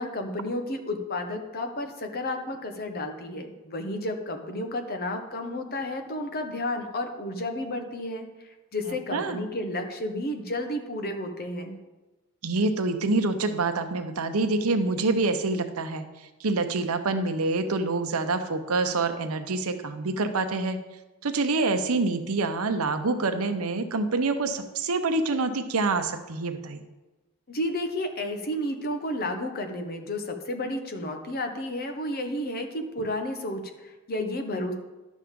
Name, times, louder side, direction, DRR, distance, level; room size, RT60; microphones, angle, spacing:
voice 1, 0.0-11.8 27.5-34.7, left 1 dB, 45° left, 6 dB, 1.0 m, -32 dB
voice 2, 12.4-16.0 16.4-20.8 21.2-26.8, right 3 dB, 80° right, 8 dB, 0.8 m, -26 dB
11.0 x 7.3 x 3.7 m, 1.1 s
head